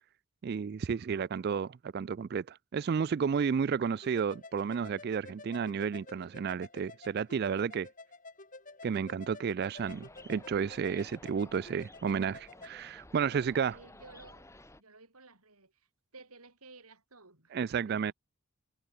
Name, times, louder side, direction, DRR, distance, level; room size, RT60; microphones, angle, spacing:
voice 1, 0.4-7.9 8.8-13.8 17.5-18.1, right 6 dB, 45° right, 0.3 m, -32 dB
sound 1, 4.0-12.7, left 3 dB, 35° left, 5.8 m, -51 dB
sound 2, 9.8-14.8, left 1 dB, 15° left, 6.3 m, -54 dB
voice 2, 13.7-14.4 14.8-15.9 16.1-18.1, right 3 dB, 85° right, 7.1 m, -55 dB
head